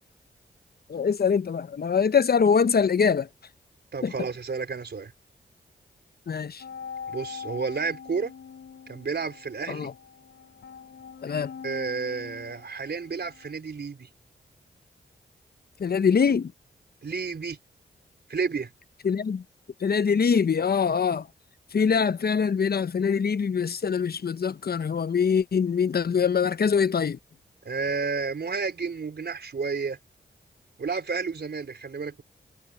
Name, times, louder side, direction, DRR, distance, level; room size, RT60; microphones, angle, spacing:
voice 1, 0.9-3.3 4.0-4.1 6.3-6.6 9.7-9.9 11.2-11.5 15.8-16.5 19.0-19.4 19.8-21.3 21.7-27.2, left 6 dB, 55° left, 0.9 m, -23 dB
voice 2, 3.9-5.1 7.1-8.3 8.9-9.9 11.6-14.1 17.0-17.6 18.3-18.7 27.6-30.0 30.8-32.2, right 5 dB, 60° right, 4.5 m, -31 dB
sound 1, 6.6-13.5, left 7 dB, 75° left, 7.8 m, -43 dB
cardioid pair, 45°, 19 cm